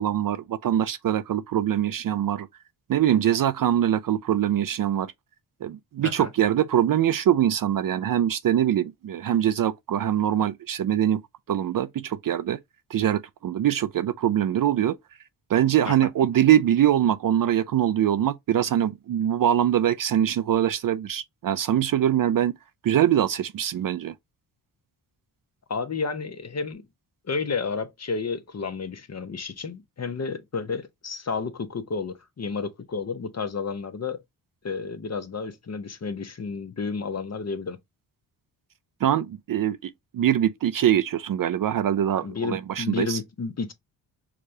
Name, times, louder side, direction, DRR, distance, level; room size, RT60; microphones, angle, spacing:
voice 1, 0.0-2.5 2.9-5.1 5.6-11.2 11.5-12.6 12.9-15.0 15.5-22.5 22.8-24.1 39.0-43.2, right 10 dB, 50° right, 0.4 m, -23 dB
voice 2, 25.7-26.8 27.2-34.2 34.6-37.8 42.2-43.7, left 4 dB, 35° left, 0.8 m, -31 dB
4.7 x 2.3 x 2.6 m
cardioid pair, 60°, 47 cm